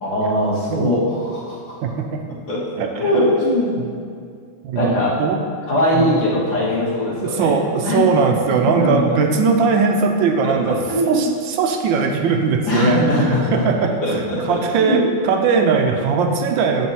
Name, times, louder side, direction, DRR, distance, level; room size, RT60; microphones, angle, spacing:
voice 1, 0.0-1.8 2.5-2.7 3.0-3.8 4.7-5.2 5.7-7.5 7.8-8.1 8.5-9.1 10.4-11.3 12.7-13.7 14.0-15.1, left 1 dB, 65° left, -6 dB, 2.1 m, -20 dB
voice 2, 1.8-2.2 2.8-3.2 3.8-4.0 4.6-5.4 5.9-6.4 7.2-10.8 11.1-16.9, right 5 dB, 75° right, 4 dB, 1.2 m, -20 dB
7.6 x 4.5 x 4.1 m, 2.2 s
omnidirectional pair, 2.3 m